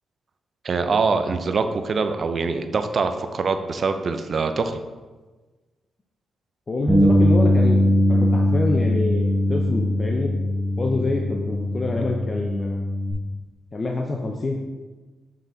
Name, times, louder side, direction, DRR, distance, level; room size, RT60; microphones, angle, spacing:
voice 1, 0.6-4.8, right 4 dB, 50° right, 8 dB, 0.5 m, -24 dB
voice 2, 6.7-7.8 8.1-10.3 10.8-12.9 13.7-14.6, left 2 dB, 35° left, 1 dB, 0.6 m, -26 dB
Bass guitar, 6.9-13.1, left 1 dB, 5° right, 1.4 m, -20 dB
7.4 x 4.0 x 3.9 m, 1.3 s
cardioid pair, 100°, 0 cm